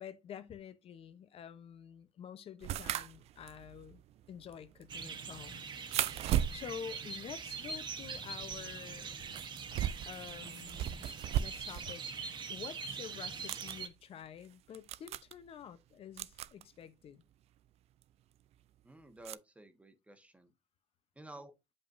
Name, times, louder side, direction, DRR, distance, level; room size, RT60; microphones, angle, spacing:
voice 1, 0.0-4.0 4.3-5.6 6.5-9.2 10.1-11.1 11.4-12.0 12.5-17.2, left 8 dB, 55° left, 0.8 m, -48 dB
sound 1, 2.6-8.1 8.4-12.0 12.3-12.4 13.2-13.8 14.4-14.5 14.7-15.3 16.2-16.6 18.0-18.1 19.2-19.4, right 12 dB, 60° right, 0.4 m, -38 dB
sound 2, 4.9-13.9, right 5 dB, 40° right, 1.1 m, -43 dB
voice 2, 18.8-20.5 21.2-21.5, right 1 dB, 10° right, 1.2 m, -52 dB
7.0 x 5.4 x 2.6 m
cardioid pair, 105°, 12 cm